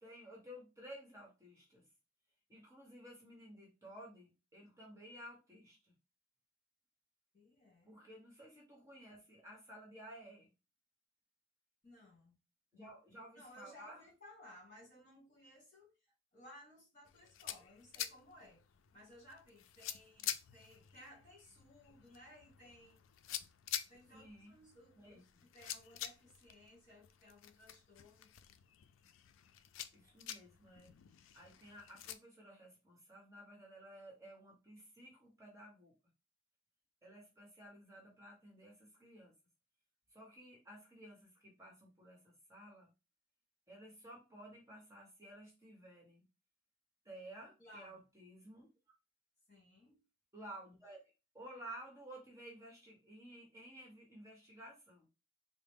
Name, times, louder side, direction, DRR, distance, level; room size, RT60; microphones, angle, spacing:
voice 1, 0.0-1.8 2.5-5.9 7.9-10.5 12.7-14.0 24.1-24.5 25.0-25.4 29.9-30.9 31.3-35.9 37.0-39.3 40.1-42.9 43.7-46.2 47.0-48.7 50.3-51.0 51.3-55.1, right 1 dB, 15° right, 1.1 m, -54 dB
voice 2, 7.3-8.0 11.8-12.3 12.7-12.9 13.3-15.9 16.3-18.6 18.9-23.0 23.9-28.3 47.6-48.0 49.5-50.0, left 1 dB, 40° left, 2.0 m, -59 dB
sound 1, 17.0-32.2, left 11 dB, 75° left, 0.4 m, -48 dB
3.8 x 2.0 x 3.5 m
head